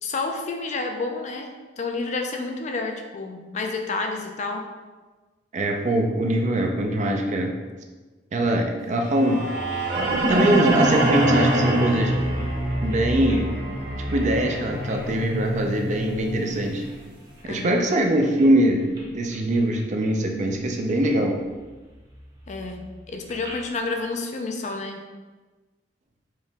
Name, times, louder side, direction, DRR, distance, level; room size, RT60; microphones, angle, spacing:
voice 1, 0.0-4.7 17.4-17.9 22.5-25.0, left 3 dB, 40° left, 4 dB, 0.4 m, -30 dB
voice 2, 5.5-7.6 8.3-9.5 9.9-12.1 12.8-13.5 14.1-16.8 17.4-21.4, right 1 dB, 40° right, 3 dB, 0.5 m, -22 dB
sound 1, 9.0-17.1, right 1 dB, 85° right, 1.0 m, -25 dB
sound 2, 9.5-16.9 17.4-18.4 18.8-19.1 19.3-20.2 20.5-21.1 21.4-23.8, equal, 20° right, 0.9 m, -36 dB
4.6 x 2.9 x 3.4 m, 1.3 s
head